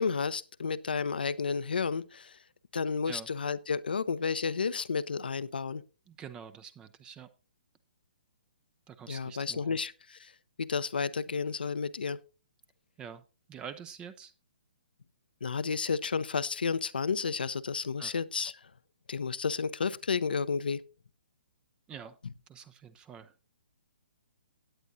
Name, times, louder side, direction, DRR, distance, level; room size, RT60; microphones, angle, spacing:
voice 1, 0.0-2.3 2.7-5.8 9.1-10.3 10.6-12.2 15.4-18.5 19.1-20.8, left 5 dB, 70° left, 0.6 m, -31 dB
voice 2, 6.1-7.3 8.9-9.8 13.0-13.2 13.5-14.3 18.0-18.1 21.9-22.2 22.5-23.3, right 7 dB, 15° right, 0.5 m, -46 dB
17.0 x 9.1 x 2.6 m
figure-of-eight pair, 130°, 5 cm